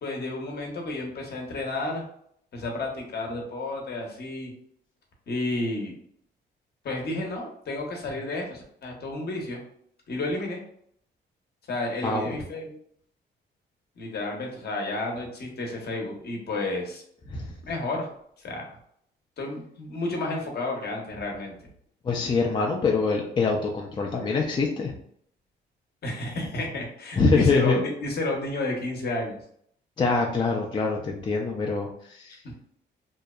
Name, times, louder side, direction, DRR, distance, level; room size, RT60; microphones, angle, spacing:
voice 1, 0.0-2.0 2.5-4.5 5.3-5.9 6.8-9.6 10.1-10.6 11.7-12.8 14.0-17.0 17.7-18.1 18.4-18.8 19.4-21.5 26.0-29.4, left 2 dB, 55° left, 1 dB, 0.8 m, -31 dB
voice 2, 12.0-12.4 17.3-17.6 22.0-24.9 27.2-27.8 30.0-32.6, left 4 dB, 25° left, 0 dB, 0.4 m, -24 dB
2.7 x 2.0 x 2.3 m, 0.66 s
cardioid pair, 90°, 20 cm